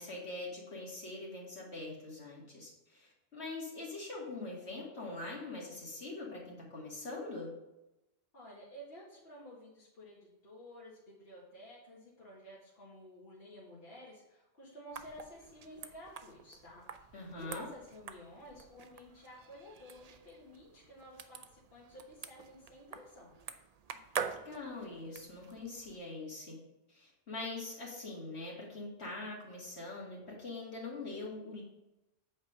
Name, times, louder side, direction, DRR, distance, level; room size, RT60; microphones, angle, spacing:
voice 1, 0.0-7.5 17.1-17.7 24.4-26.6 26.9-31.6, left 2 dB, 80° left, -4 dB, 2.6 m, -43 dB
voice 2, 8.3-23.3, equal, 60° left, -6 dB, 1.9 m, -52 dB
sound 1, 14.9-26.0, right 7 dB, 50° right, 0.5 m, -46 dB
8.1 x 4.4 x 5.4 m, 0.94 s
omnidirectional pair, 1.1 m